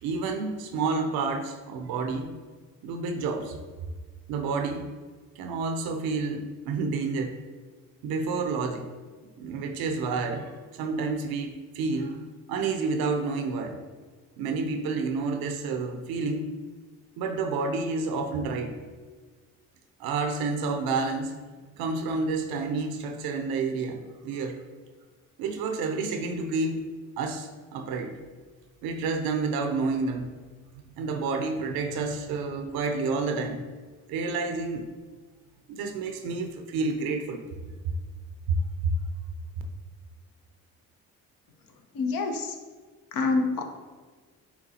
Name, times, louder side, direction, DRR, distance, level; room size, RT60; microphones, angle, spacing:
voice 1, 0.0-2.3 2.8-3.6 4.3-4.9 5.4-7.3 8.0-8.8 9.4-12.2 12.5-13.8 14.4-16.5 17.2-18.7 20.0-21.3 21.8-24.6 25.4-26.9 27.2-28.1 28.8-30.3 30.9-33.6 34.1-34.8 35.7-37.4 38.5-38.6 38.8-38.9, right 4 dB, 75° right, 5 dB, 0.6 m, -29 dB
voice 2, 41.9-42.5 43.1-43.6, left 3 dB, 65° left, 4 dB, 0.8 m, -26 dB
6.9 x 2.3 x 2.8 m, 1.4 s
supercardioid pair, 60°, 36 cm